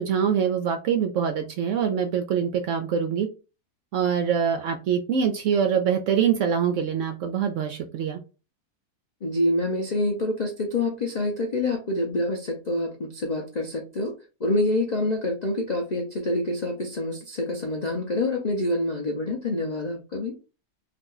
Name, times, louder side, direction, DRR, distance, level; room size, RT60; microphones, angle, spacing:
voice 1, 0.0-3.3 3.9-8.2, right 7 dB, 70° right, 6 dB, 0.7 m, -24 dB
voice 2, 9.2-14.1 14.4-20.4, left 1 dB, 85° left, 1 dB, 0.3 m, -26 dB
2.8 x 2.5 x 3.6 m, 0.32 s
omnidirectional pair, 1.7 m